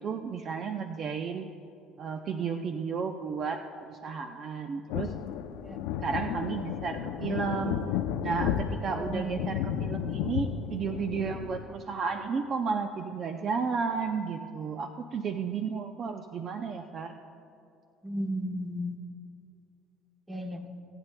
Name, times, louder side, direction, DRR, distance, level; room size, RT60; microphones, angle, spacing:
voice 1, 0.0-1.5 2.0-5.2 6.0-7.8 8.2-17.2, right 5 dB, 45° right, 6 dB, 0.5 m, -33 dB
sound 1, 4.9-11.7, left 9 dB, 85° left, 0.5 m, -33 dB
voice 2, 8.9-9.5 18.0-19.0 20.3-20.6, equal, 15° right, 3 dB, 1.2 m, -34 dB
25.0 x 8.9 x 2.2 m, 2.6 s
cardioid pair, 110°, 0 cm